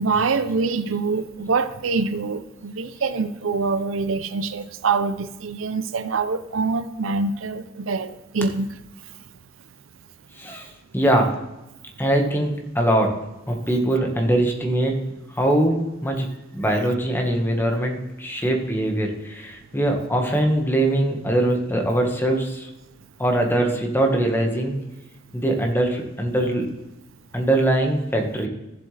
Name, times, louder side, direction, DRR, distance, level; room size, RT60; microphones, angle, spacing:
voice 1, 0.0-8.7, right 4 dB, 80° right, 13 dB, 0.6 m, -25 dB
voice 2, 10.4-10.7 10.9-11.4 12.0-13.2 13.5-22.7 23.2-24.8 25.3-26.7 27.3-28.5, right 1 dB, 10° left, 2 dB, 1.4 m, -22 dB
14.0 x 7.7 x 3.3 m, 0.96 s
head